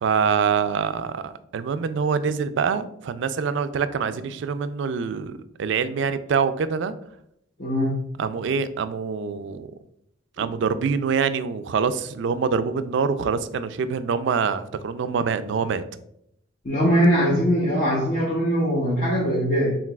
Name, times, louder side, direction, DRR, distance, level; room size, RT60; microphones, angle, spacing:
voice 1, 0.0-6.9 8.2-9.7 10.4-15.8, right 6 dB, 65° right, 12 dB, 0.3 m, -25 dB
voice 2, 7.6-8.0 16.6-19.8, equal, 45° left, -5 dB, 0.8 m, -21 dB
4.6 x 3.7 x 2.3 m, 0.73 s
head